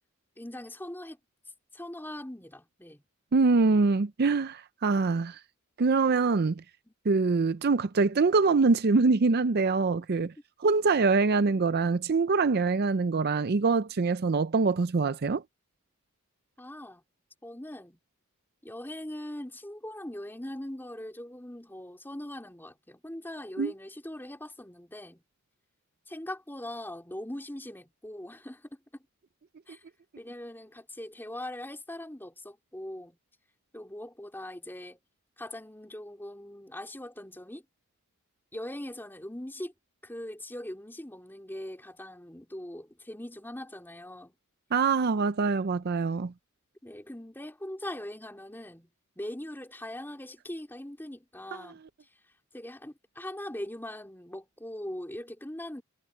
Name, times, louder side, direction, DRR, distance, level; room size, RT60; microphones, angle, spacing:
voice 1, 0.4-1.2 1.7-3.0 6.8-6.9 10.2-10.3 16.6-17.0 17.4-18.0 18.6-25.2 26.1-29.0 29.7-29.8 30.2-33.2 33.7-35.0 35.4-37.6 38.5-39.7 40.0-44.3 46.8-48.9 49.1-51.8 52.5-55.8, left 1 dB, 10° left, 3.2 m, -41 dB
voice 2, 3.3-5.4 5.8-6.6 7.1-10.3 10.6-15.4 23.6-23.7 44.7-46.3, right 4 dB, 45° right, 0.5 m, -24 dB
head